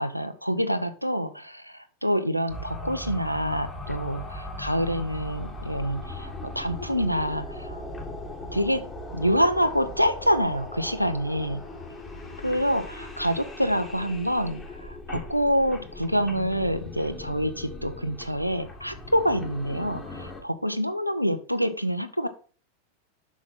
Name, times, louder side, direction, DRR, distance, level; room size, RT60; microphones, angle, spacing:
voice 1, 0.0-7.8 8.5-8.9 9.1-11.6 12.4-22.3, equal, 90° right, 10 dB, 0.7 m, -26 dB
sound 1, 2.5-20.4, left 2 dB, 15° left, 2.0 m, -39 dB
6.4 x 5.9 x 5.4 m, 0.40 s
figure-of-eight pair, 90°, 0 cm